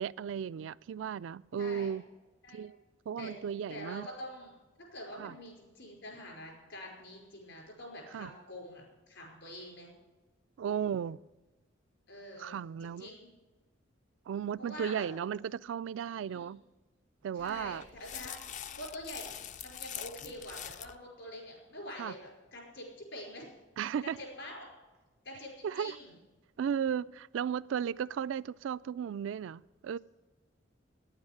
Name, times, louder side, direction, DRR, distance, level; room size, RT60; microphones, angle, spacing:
voice 1, 0.0-2.0 2.5-2.8 3.1-4.1 5.2-5.4 8.1-8.3 10.6-11.2 12.4-13.1 14.3-16.6 17.2-17.8 22.0-22.1 23.8-24.2 25.6-26.0 26.6-30.0, right 8 dB, 75° right, 0.3 m, -35 dB
voice 2, 1.5-1.9 2.4-2.7 3.2-3.3 3.7-4.5 4.9-9.9 12.1-12.5 12.8-13.3 14.6-15.1 16.2-16.4 17.3-18.3 18.7-19.3 19.6-23.5 24.2-24.7 25.2-26.2 26.8-26.9, left 1 dB, 70° left, 5.1 m, -46 dB
sound 1, 17.4-21.0, left 10 dB, 40° left, 0.4 m, -44 dB
9.7 x 8.9 x 9.5 m
head